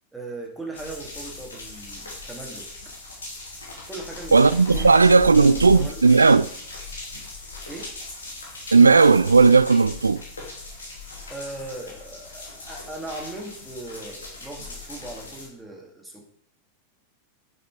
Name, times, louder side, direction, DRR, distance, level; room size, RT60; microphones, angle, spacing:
voice 1, 0.1-2.9 3.9-4.4 4.7-6.0 7.7-7.9 11.3-16.3, right 2 dB, 5° right, 2.3 m, -39 dB
sound 1, 0.7-15.5, left 3 dB, 70° left, 2.8 m, -38 dB
voice 2, 4.3-6.5 8.7-10.2, right 4 dB, 75° right, 0.4 m, -15 dB
9.4 x 6.5 x 4.8 m
figure-of-eight pair, 90°, 0 cm